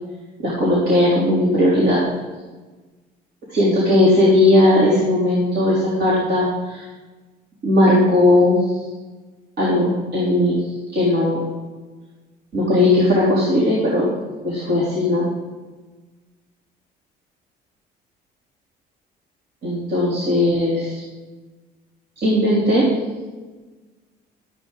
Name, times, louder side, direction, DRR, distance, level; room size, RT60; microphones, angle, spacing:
voice 1, 0.4-2.0 3.5-6.8 7.6-8.8 9.6-10.6 10.9-11.4 12.5-14.1 14.4-15.3 19.6-21.0 22.2-22.9, left 1 dB, 70° right, -7 dB, 3.8 m, -17 dB
13.0 x 9.0 x 4.0 m, 1.3 s
cardioid pair, 110°, 17 cm